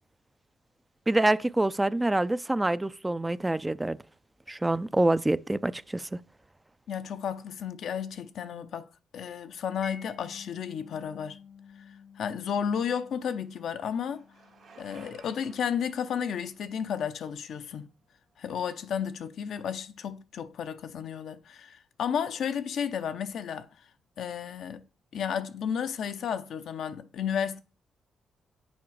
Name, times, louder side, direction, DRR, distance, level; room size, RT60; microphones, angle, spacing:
voice 1, 1.1-4.0 4.5-6.2, right 2 dB, 15° right, 0.4 m, -26 dB
voice 2, 6.9-11.4 11.8-11.9 12.2-14.2 14.8-17.9 18.4-23.7 24.2-24.8 25.1-27.6, left 7 dB, 75° left, 0.6 m, -33 dB
Mallet percussion, 9.8-16.6, left 5 dB, 30° left, 0.7 m, -52 dB
Bicycle, 12.6-18.3, right 5 dB, 75° right, 1.7 m, -58 dB
7.2 x 4.8 x 4.7 m
supercardioid pair, 55°, 0 cm